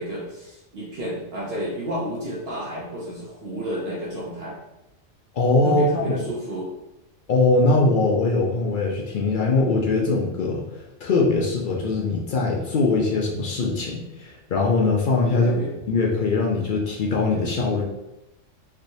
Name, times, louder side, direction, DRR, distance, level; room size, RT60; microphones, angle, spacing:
voice 1, 0.0-4.6 5.6-6.7 15.3-15.8, equal, 60° right, -5 dB, 0.8 m, -31 dB
voice 2, 5.3-6.1 7.3-15.6 15.9-17.8, left 3 dB, 60° left, -2 dB, 0.5 m, -22 dB
3.4 x 2.9 x 2.6 m, 0.94 s
omnidirectional pair, 1.3 m